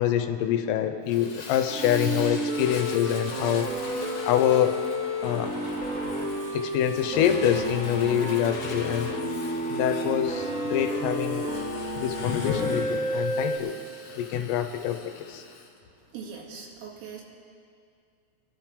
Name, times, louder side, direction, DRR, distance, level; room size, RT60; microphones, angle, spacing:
voice 1, 0.0-3.7 4.2-4.8 5.2-5.5 6.5-9.1 9.7-11.5 11.9-13.8 14.1-15.4, left 10 dB, 85° left, 7 dB, 3.5 m, -25 dB
Fire, 1.1-15.7, left 4 dB, 70° left, 2.0 m, -42 dB
sound 1, 1.7-13.6, equal, ahead, 3.2 m, -31 dB
voice 2, 16.1-17.2, right 6 dB, 75° right, -4 dB, 4.6 m, -41 dB
25.0 x 13.0 x 3.4 m, 2.3 s
omnidirectional pair, 5.8 m